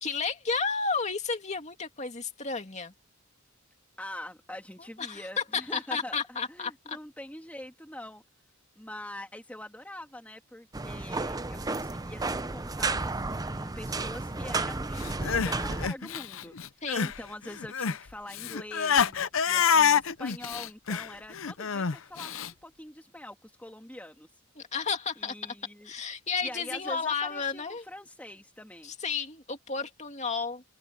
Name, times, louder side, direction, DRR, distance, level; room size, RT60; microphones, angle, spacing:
voice 1, 0.0-2.9 5.0-5.3 5.5-7.0 16.8-17.1 24.6-25.5 25.8-27.8 28.8-30.6, left 5 dB, 35° left, 2.5 m, -32 dB
voice 2, 4.0-8.2 8.8-16.5 17.0-24.3 25.2-25.9 26.4-28.9, left 1 dB, 5° left, 1.9 m, -44 dB
sound 1, 10.7-15.9, right 3 dB, 15° right, 0.6 m, -32 dB
Crying sobbing, 15.0-17.2 17.5-22.5, left 7 dB, 70° left, 0.7 m, -27 dB
head